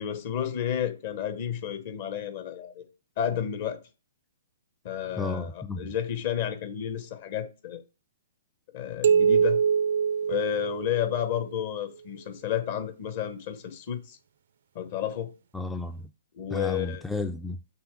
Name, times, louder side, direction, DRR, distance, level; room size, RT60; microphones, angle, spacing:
voice 1, 0.0-2.8 3.2-3.8 4.8-7.8 8.7-9.6 10.3-14.2 14.7-15.3 16.3-17.0, left 10 dB, 45° left, 1.1 m, -31 dB
voice 2, 5.2-5.9 15.5-16.1 16.5-17.6, left 3 dB, 5° left, 0.3 m, -32 dB
sound 1, 9.0-11.4, right 7 dB, 60° right, 0.4 m, -24 dB
6.1 x 3.5 x 4.6 m
figure-of-eight pair, 125°, 0 cm